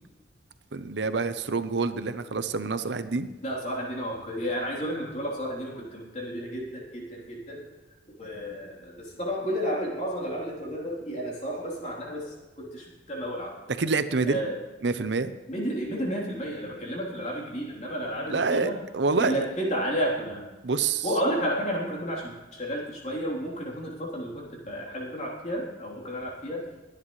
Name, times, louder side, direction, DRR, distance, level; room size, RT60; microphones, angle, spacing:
voice 1, 0.7-3.3 13.8-14.4 14.8-15.3 18.3-19.4 20.6-21.1, right 4 dB, 75° right, 11 dB, 0.7 m, -27 dB
voice 2, 3.4-7.6 8.2-13.6 14.3-14.6 15.5-18.7 19.1-20.5 21.0-26.7, equal, 40° left, -3 dB, 3.5 m, -32 dB
22.5 x 9.9 x 3.2 m, 1.2 s
head